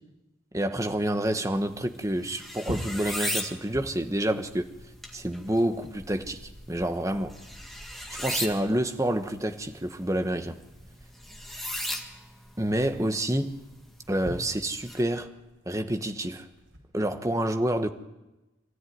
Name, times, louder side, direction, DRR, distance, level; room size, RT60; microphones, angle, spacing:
voice 1, 0.5-4.7 5.1-7.4 8.1-10.6 12.6-13.6 14.1-15.3 15.6-16.5 16.9-17.9, right 1 dB, 15° right, 1.2 m, -28 dB
sound 1, 0.9-16.8, equal, 80° right, 6.9 m, -47 dB
sound 2, 1.5-15.0, equal, ahead, 1.8 m, -39 dB
24.5 x 14.0 x 9.5 m
head